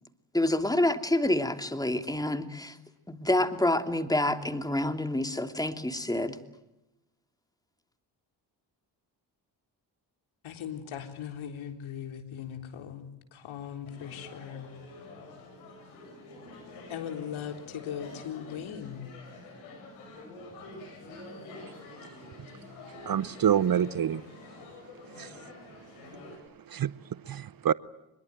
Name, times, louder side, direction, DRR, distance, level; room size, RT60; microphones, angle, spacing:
voice 1, 0.3-2.8 3.1-6.4, left 1 dB, 5° left, 3.0 m, -27 dB
voice 2, 10.4-14.7 16.9-19.1, left 9 dB, 70° left, 4.0 m, -39 dB
sound 1, 13.8-26.4, left 2 dB, 85° left, 7.7 m, -47 dB
voice 3, 23.1-24.2 25.2-25.3 26.7-26.9 27.3-27.7, right 9 dB, 45° right, 0.9 m, -26 dB
25.5 x 22.0 x 9.2 m
hypercardioid pair, 45°, 50 cm